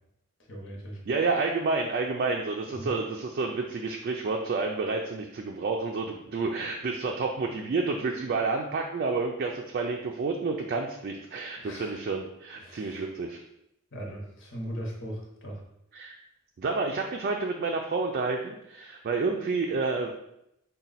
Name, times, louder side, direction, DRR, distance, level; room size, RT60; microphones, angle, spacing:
voice 1, 0.5-1.0 2.7-2.9 11.6-12.0 12.5-13.1 13.9-15.6, equal, 60° left, -1 dB, 1.0 m, -39 dB
voice 2, 1.1-13.4 15.9-16.2 16.6-20.1, right 3 dB, 45° right, 1 dB, 0.3 m, -29 dB
4.1 x 2.2 x 4.0 m, 0.80 s
head